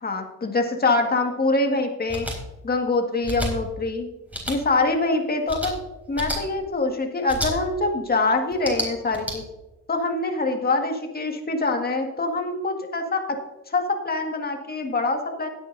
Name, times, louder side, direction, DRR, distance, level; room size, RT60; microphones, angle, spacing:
voice 1, 0.0-2.3 2.6-4.1 4.5-5.7 6.1-9.4 9.9-13.4 13.7-15.5, left 3 dB, 30° left, 3 dB, 1.9 m, -24 dB
sound 1, 2.1-2.4 3.2-3.5 4.3-4.6 5.5-5.7 6.1-6.4 7.3-7.5 8.5-9.3, equal, 5° right, 4.4 m, -29 dB
17.0 x 9.0 x 2.7 m, 1.1 s
cardioid pair, 90°, 30 cm